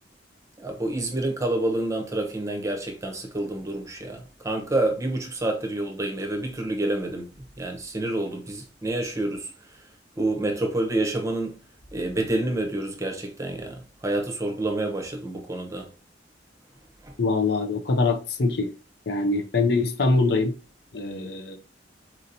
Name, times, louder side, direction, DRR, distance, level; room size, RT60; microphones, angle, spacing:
voice 1, 0.6-9.8 10.2-11.6 11.9-15.9 17.0-17.1, right 2 dB, 20° right, 0.7 m, -28 dB
voice 2, 17.2-18.7 19.1-20.5 20.9-21.6, left 3 dB, 65° left, 0.5 m, -23 dB
4.3 x 2.8 x 2.6 m
head